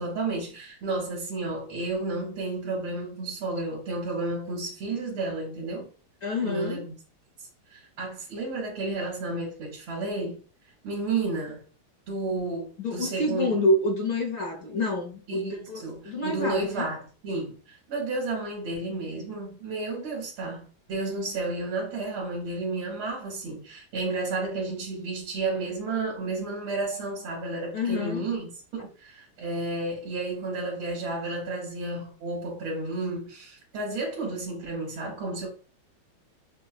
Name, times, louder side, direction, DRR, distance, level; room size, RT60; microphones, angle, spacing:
voice 1, 0.0-5.9 6.4-6.9 7.7-10.4 10.8-11.6 12.1-13.5 15.3-35.5, right 2 dB, 70° right, 1.9 m, -32 dB
voice 2, 6.2-6.8 12.8-16.8 27.7-28.2, left 1 dB, 50° left, 1.1 m, -27 dB
6.1 x 2.3 x 2.3 m
omnidirectional pair, 2.4 m